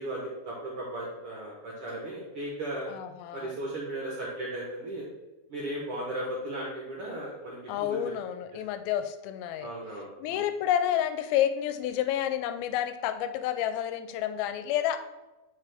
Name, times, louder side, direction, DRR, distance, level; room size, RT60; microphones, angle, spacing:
voice 1, 0.0-2.9 3.3-5.1 5.5-8.0 9.6-10.4, right 1 dB, 65° right, -4 dB, 1.4 m, -36 dB
voice 2, 2.9-3.5 7.7-9.7 10.2-15.0, left 10 dB, 90° left, 10 dB, 2.4 m, -29 dB
8.2 x 4.9 x 3.4 m, 1.1 s
omnidirectional pair, 4.2 m